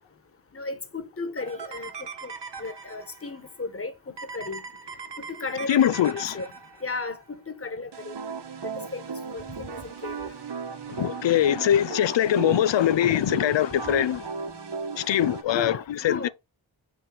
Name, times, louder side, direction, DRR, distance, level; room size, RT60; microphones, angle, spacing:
voice 1, 0.5-2.3 2.6-3.9 4.3-4.6 5.2-6.5 6.8-8.4 8.9-10.3 15.5-16.3, left 3 dB, 30° left, 1.4 m, -35 dB
sound 1, 1.4-3.3 4.2-7.0 7.9-15.4, right 4 dB, 60° right, 1.2 m, -37 dB
voice 2, 5.7-6.4 11.0-14.2 15.0-16.3, left 11 dB, 65° left, 0.5 m, -22 dB
6.3 x 3.1 x 5.7 m
cardioid pair, 45°, 48 cm